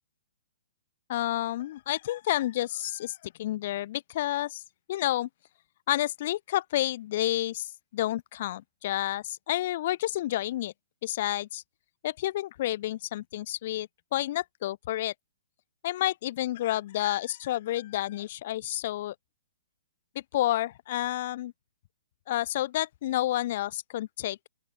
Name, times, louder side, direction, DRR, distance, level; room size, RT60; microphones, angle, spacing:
voice 1, 1.1-4.6 4.9-5.3 5.9-10.7 11.0-11.6 12.0-15.1 15.8-19.1 20.3-21.5 22.3-24.5, left 14 dB, 50° left, 0.5 m, -30 dB
open air
hypercardioid pair, 140°, 0 cm